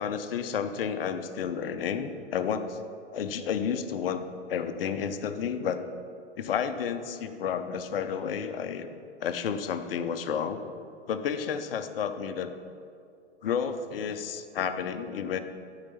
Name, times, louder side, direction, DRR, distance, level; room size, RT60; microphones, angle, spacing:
voice 1, 0.0-2.8 3.1-4.2 4.5-5.8 6.4-8.9 9.2-10.6 11.1-12.5 13.4-15.4, left 7 dB, 55° left, 9 dB, 0.7 m, -31 dB
13.5 x 4.8 x 5.6 m, 2.4 s
figure-of-eight pair, 105°, 35 cm